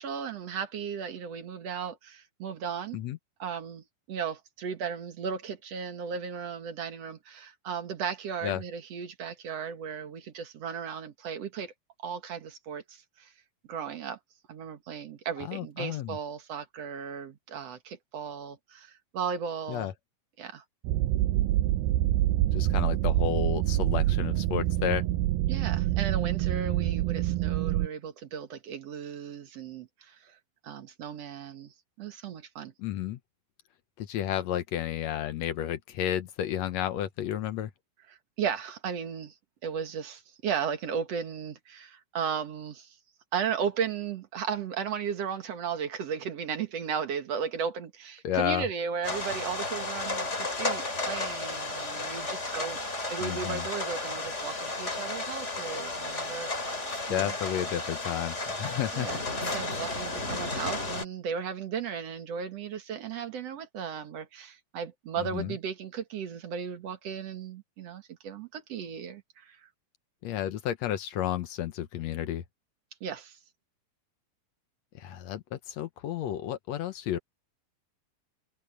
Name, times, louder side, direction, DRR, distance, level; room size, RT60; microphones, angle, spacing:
voice 1, 0.0-3.0 3.4-11.7 12.0-13.3 13.7-14.2 14.5-19.9 20.4-20.6 25.5-30.4 30.6-32.7 38.4-39.3 39.6-42.9 43.3-56.5 57.1-57.3 58.9-69.6 73.0-73.4, right 7 dB, 55° right, 2.3 m, -35 dB
voice 2, 15.5-16.2 19.7-19.9 22.5-25.0 32.8-33.2 34.0-37.7 48.2-48.6 53.2-53.7 57.1-59.1 59.4-59.6 65.2-65.6 70.2-72.4 75.0-77.2, left 11 dB, 70° left, 1.7 m, -32 dB
sound 1, 20.8-27.9, right 15 dB, 85° right, 2.5 m, -26 dB
sound 2, 49.0-61.0, left 2 dB, 20° left, 3.0 m, -33 dB
omnidirectional pair, 4.1 m